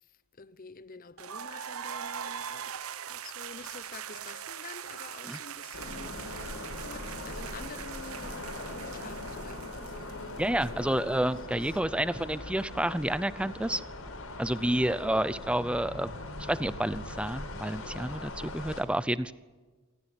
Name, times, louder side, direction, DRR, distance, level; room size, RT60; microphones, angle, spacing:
voice 1, 0.4-2.8 3.1-10.9 11.9-12.3 14.5-15.4, left 4 dB, 40° left, 0.9 m, -49 dB
sound 1, 1.2-11.0, right 8 dB, 85° right, 0.8 m, -41 dB
sound 2, 5.7-18.8, left 2 dB, 75° left, 5.6 m, -41 dB
voice 2, 10.4-13.8 14.4-16.1 16.4-19.3, right 1 dB, 5° right, 0.6 m, -29 dB
28.0 x 15.0 x 9.8 m
head